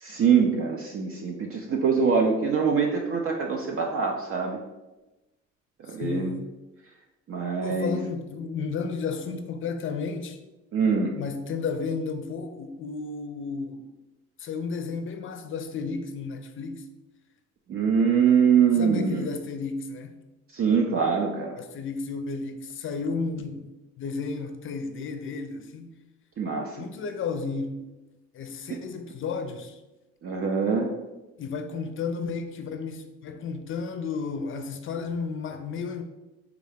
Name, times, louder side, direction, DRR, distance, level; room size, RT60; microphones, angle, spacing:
voice 1, 0.0-4.6 5.9-6.3 7.3-8.0 10.7-11.1 17.7-19.3 20.5-21.6 26.4-26.8 30.2-30.9, right 6 dB, 45° right, 0.5 m, -23 dB
voice 2, 5.9-6.5 7.6-10.4 11.1-13.9 14.4-16.9 18.7-20.2 21.6-23.7 24.0-26.0 26.8-27.9 28.3-29.8 31.4-36.0, left 4 dB, 40° left, 0.5 m, -33 dB
3.5 x 2.4 x 3.3 m
supercardioid pair, 60°, 32 cm